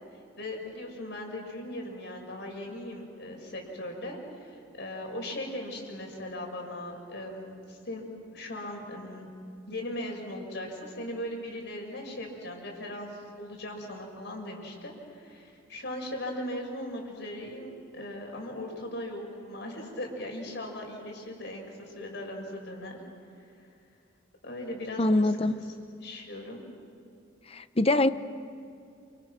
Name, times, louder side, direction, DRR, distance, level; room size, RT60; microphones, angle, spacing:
voice 1, 0.4-8.0 8.3-9.3 9.7-23.0 24.4-25.6 26.0-26.6, left 1 dB, 60° left, 1 dB, 6.6 m, -38 dB
voice 2, 25.0-25.6 27.5-28.1, left 2 dB, 30° left, 12 dB, 0.8 m, -23 dB
29.5 x 29.0 x 6.2 m, 2.5 s
head